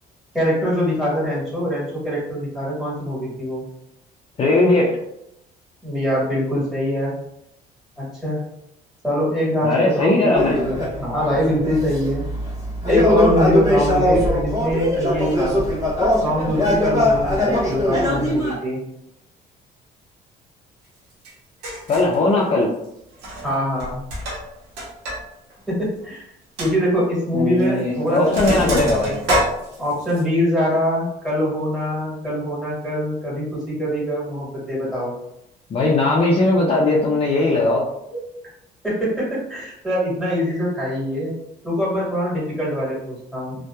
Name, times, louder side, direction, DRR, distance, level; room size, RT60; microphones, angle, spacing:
voice 1, 0.3-3.6 5.8-7.1 8.0-8.4 9.0-12.2 12.8-15.6 16.2-18.8 23.4-24.0 25.7-26.2 26.6-29.2 29.8-35.1 38.1-38.2 38.8-41.3 41.6-43.5, equal, ahead, -7 dB, 1.4 m, -23 dB
voice 2, 4.4-5.0 9.6-10.6 21.9-22.7 27.3-29.1 35.7-37.9, left 2 dB, 35° left, -3 dB, 0.5 m, -18 dB
sound 1, 10.3-18.6, left 1 dB, 20° right, 1.2 m, -21 dB
Sink (filling or washing), 21.2-21.3 21.6-22.2 23.1-23.5 23.8-25.2 25.5-25.6 26.0-26.1 26.6-26.7 27.6-27.8 28.1-30.2, right 1 dB, 90° right, 0.8 m, -26 dB
2.7 x 2.2 x 2.2 m, 0.80 s
cardioid pair, 110°, 17 cm